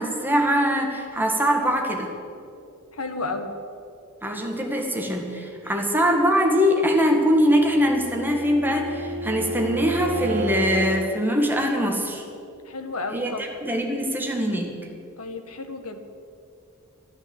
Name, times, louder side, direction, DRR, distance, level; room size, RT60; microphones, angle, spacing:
voice 1, 0.0-2.1 4.2-12.3 13.1-14.8, equal, 10° right, 1 dB, 1.9 m, -22 dB
voice 2, 2.9-3.5 5.8-5.9 12.6-13.5 15.2-16.0, left 3 dB, 75° left, 6 dB, 1.6 m, -32 dB
Bowed string instrument, 7.4-11.1, right 1 dB, 80° right, 1.5 m, -31 dB
13.0 x 12.0 x 8.0 m, 2.4 s
head